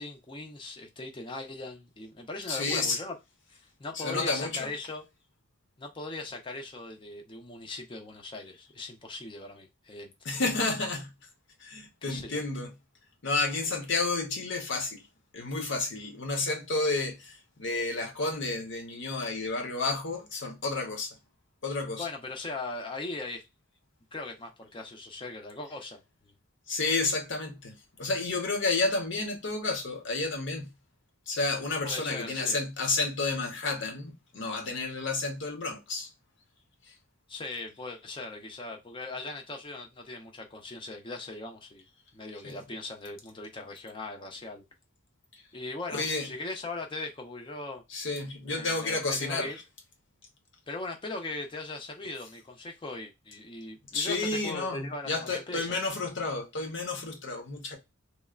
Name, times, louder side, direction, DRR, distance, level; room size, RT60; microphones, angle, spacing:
voice 1, 0.0-3.2 3.8-5.0 5.8-10.1 12.1-12.4 22.0-23.4 24.1-26.3 31.8-32.6 37.3-41.8 42.1-44.6 45.5-47.8 48.5-49.6 50.7-55.8, left 2 dB, 25° left, 0.5 m, -39 dB
voice 2, 2.5-3.0 3.9-4.7 10.2-11.1 11.6-12.7 13.2-15.0 15.3-21.2 21.6-22.1 26.7-30.7 31.3-36.1 36.9-37.0 42.4-42.6 45.3-45.4 45.9-46.3 47.9-49.5 53.9-57.8, left 3 dB, 60° left, 0.8 m, -31 dB
3.1 x 2.0 x 2.3 m
head